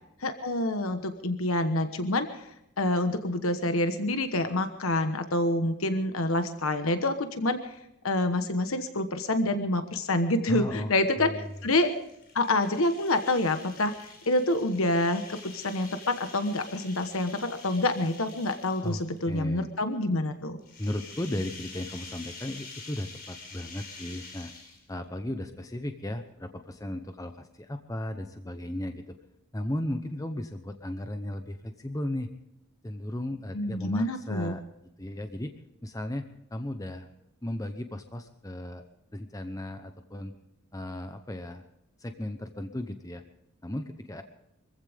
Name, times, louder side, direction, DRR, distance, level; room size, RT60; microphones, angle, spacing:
voice 1, 0.2-2.3 2.8-7.6 8.0-11.3 11.6-11.9 12.3-20.6 33.5-34.5, left 2 dB, 80° left, 8 dB, 1.2 m, -27 dB
voice 2, 10.5-11.6 18.8-19.7 20.8-24.5 24.9-29.2 29.5-32.3 32.8-34.6 35.0-35.5 35.8-37.1 37.4-38.8 39.1-40.3 40.7-41.6 42.0-43.2 43.6-44.2, left 1 dB, 15° left, 7 dB, 0.9 m, -35 dB
sound 1, 11.4-19.2 20.6-25.1, left 4 dB, 45° left, 4.6 m, -47 dB
24.5 x 15.5 x 3.5 m, 0.81 s
head